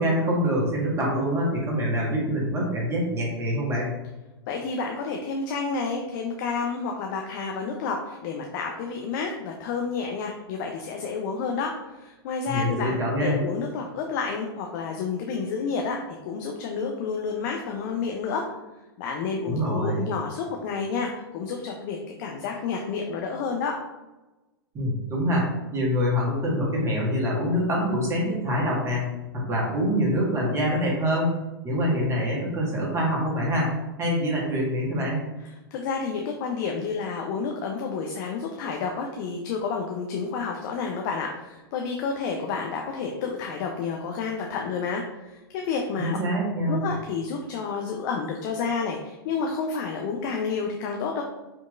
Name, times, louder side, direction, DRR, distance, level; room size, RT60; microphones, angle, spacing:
voice 1, 0.0-3.9 12.5-13.4 19.5-20.0 24.7-29.0 29.3-31.3 31.6-33.7 34.0-35.2 46.0-46.8, equal, 20° right, -3 dB, 1.4 m, -25 dB
voice 2, 4.5-18.5 19.0-23.8 35.7-46.2 46.6-51.2, left 5 dB, 50° left, 2 dB, 0.5 m, -30 dB
4.5 x 2.9 x 2.4 m, 1.1 s
hypercardioid pair, 115°, 13 cm